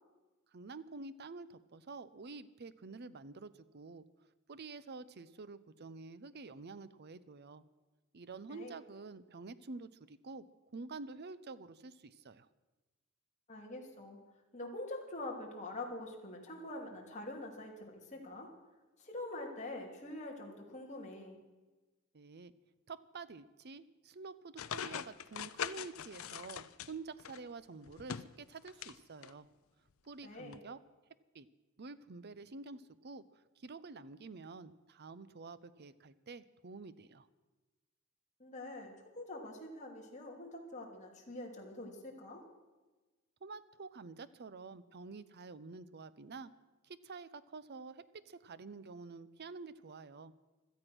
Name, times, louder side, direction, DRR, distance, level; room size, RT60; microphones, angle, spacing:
voice 1, 0.5-7.6 8.1-10.4 10.7-12.5 22.1-22.5 22.9-29.5 30.1-30.8 31.3-31.5 31.8-33.2 33.6-37.3 43.4-46.5 46.8-50.3, right 4 dB, 50° right, 15 dB, 0.7 m, -49 dB
voice 2, 13.5-14.2 14.5-18.5 19.0-21.4 30.2-30.6 38.4-42.4, left 2 dB, 35° left, 0 dB, 2.9 m, -45 dB
sound 1, 24.6-27.4 27.9-29.0 29.2-29.3 30.5-30.6, left 8 dB, 80° left, 0.6 m, -42 dB
17.0 x 13.0 x 6.1 m, 1.2 s
head